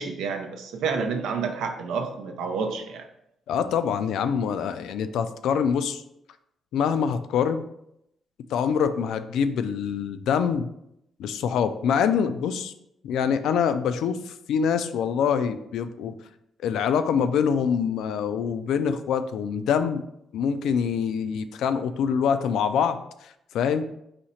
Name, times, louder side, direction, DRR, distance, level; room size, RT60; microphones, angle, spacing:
voice 1, 0.0-3.0, right 5 dB, 90° right, 5 dB, 0.6 m, -29 dB
voice 2, 3.5-6.0 6.7-7.6 8.5-10.7 11.2-12.7 13.0-16.1 16.6-20.0 20.3-23.8, left 7 dB, 85° left, 10 dB, 0.3 m, -25 dB
4.2 x 2.8 x 4.2 m, 0.79 s
cardioid pair, 105°, 0 cm